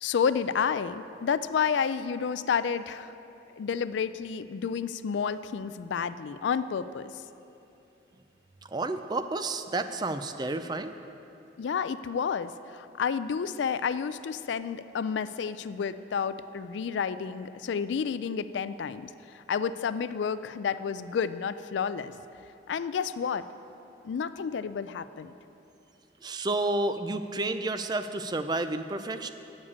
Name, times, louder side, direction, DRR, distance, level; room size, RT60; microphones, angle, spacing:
voice 1, 0.0-3.1 3.6-7.1 11.6-22.2 22.7-23.5 24.0-25.3, left 6 dB, 75° left, 14 dB, 0.3 m, -30 dB
voice 2, 8.7-11.0 26.2-29.3, right 2 dB, 20° right, 9 dB, 0.3 m, -30 dB
8.6 x 7.3 x 8.4 m, 2.8 s
head